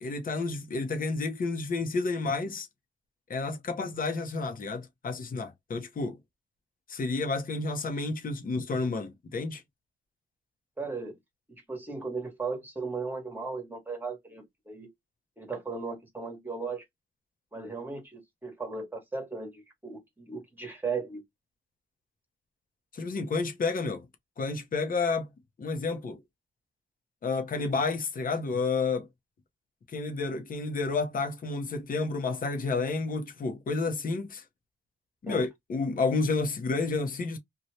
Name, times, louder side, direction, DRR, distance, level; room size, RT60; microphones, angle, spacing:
voice 1, 0.0-2.7 3.3-6.2 6.9-9.6 22.9-24.1 24.4-25.3 25.6-26.2 27.2-29.1 29.9-34.4 35.2-37.4, left 3 dB, 40° left, 0.8 m, -30 dB
voice 2, 10.8-11.2 11.7-14.9 15.4-16.8 17.5-21.2 35.3-35.4, right 4 dB, 10° right, 1.2 m, -36 dB
2.8 x 2.3 x 3.1 m
cardioid pair, 115°, 21 cm